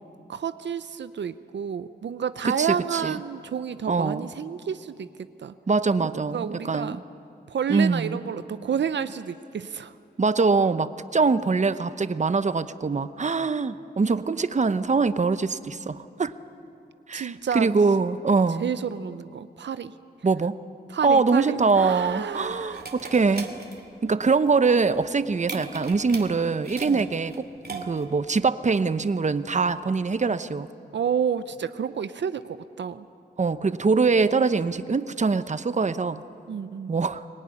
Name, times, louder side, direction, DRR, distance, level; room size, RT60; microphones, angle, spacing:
voice 1, 0.3-5.5 6.0-7.0 7.5-10.0 14.1-14.4 17.1-17.7 18.5-19.9 20.9-22.9 26.8-27.1 27.7-27.9 30.9-33.1 36.5-36.9, right 7 dB, 80° right, 12 dB, 0.7 m, -30 dB
voice 2, 2.4-3.2 3.9-4.3 5.7-7.0 7.7-8.2 10.2-16.3 17.1-18.7 20.2-20.6 21.0-23.5 24.0-27.5 27.8-30.7 33.4-36.2 36.9-37.2, right 4 dB, 40° right, 13 dB, 0.9 m, -23 dB
sound 1, 21.8-28.2, right 3 dB, 60° right, 2.5 m, -40 dB
24.0 x 19.0 x 9.9 m, 2.6 s
cardioid pair, 60°, 18 cm